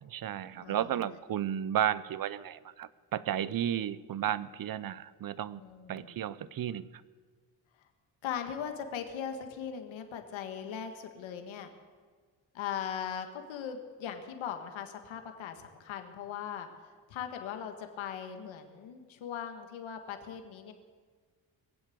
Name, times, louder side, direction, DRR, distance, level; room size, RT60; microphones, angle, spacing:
voice 1, 0.0-5.6 5.9-6.9, right 10 dB, 50° right, 17 dB, 0.7 m, -33 dB
voice 2, 5.6-6.1 8.2-11.7 12.5-16.7 17.1-20.7, left 8 dB, 85° left, 6 dB, 1.6 m, -39 dB
21.0 x 7.5 x 8.5 m, 1.5 s
cardioid pair, 80°, 45 cm